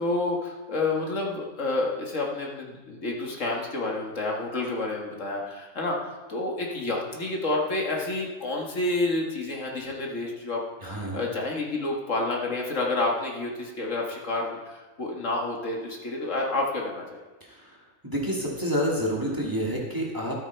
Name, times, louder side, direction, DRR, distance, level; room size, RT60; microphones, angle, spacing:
voice 1, 0.0-6.0 6.3-17.2, left 2 dB, 65° left, -1 dB, 2.0 m, -29 dB
voice 2, 10.8-11.3 17.5-17.8 18.0-20.3, equal, 15° right, -3 dB, 2.0 m, -28 dB
12.5 x 8.8 x 4.5 m, 1.2 s
omnidirectional pair, 1.4 m